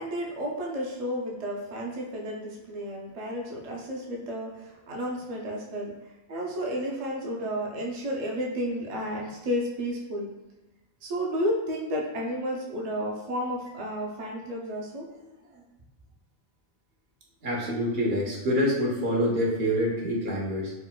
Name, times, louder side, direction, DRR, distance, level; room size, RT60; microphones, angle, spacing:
voice 1, 0.0-5.9 6.3-10.3 11.0-15.6, equal, 45° right, -2 dB, 0.5 m, -32 dB
voice 2, 17.4-20.7, equal, 70° right, -2 dB, 1.0 m, -26 dB
4.2 x 2.1 x 2.2 m, 1.1 s
omnidirectional pair, 1.1 m